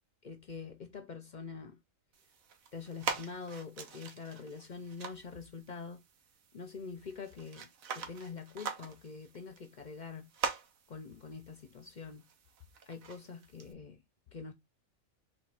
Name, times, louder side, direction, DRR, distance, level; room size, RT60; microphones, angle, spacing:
voice 1, 0.2-1.8 2.7-6.0 6.5-10.3 10.9-12.2 12.8-14.0 14.3-14.5, left 5 dB, 50° left, 0.5 m, -45 dB
sound 1, 2.1-13.7, right 6 dB, 85° right, 1.2 m, -44 dB
4.3 x 2.4 x 4.7 m
omnidirectional pair, 1.4 m